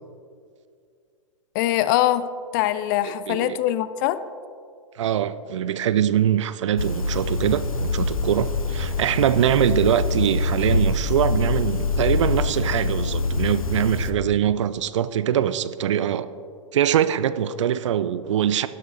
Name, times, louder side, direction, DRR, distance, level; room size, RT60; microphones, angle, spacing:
voice 1, 1.5-4.2, left 13 dB, 35° left, 14 dB, 0.4 m, -23 dB
voice 2, 3.0-3.6 5.0-16.3 16.7-18.7, right 10 dB, 60° right, 14 dB, 0.5 m, -23 dB
sound 1, 6.8-14.1, left 3 dB, 85° left, 0.7 m, -25 dB
12.5 x 11.0 x 2.7 m, 2.3 s
figure-of-eight pair, 105°, 18 cm